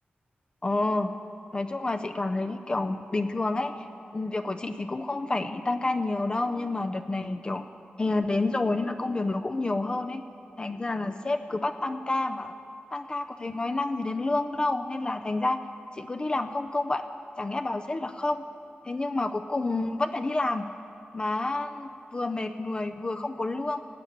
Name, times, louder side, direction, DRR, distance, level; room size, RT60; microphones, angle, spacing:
voice 1, 0.6-1.1 1.5-3.9 4.1-7.7 8.0-10.2 10.6-12.5 12.9-15.6 15.9-17.1 17.4-18.4 18.9-20.6 21.1-23.8, left 2 dB, 25° left, 7 dB, 0.4 m, -29 dB
16.5 x 8.9 x 8.6 m, 2.7 s
wide cardioid pair, 155°, 4 cm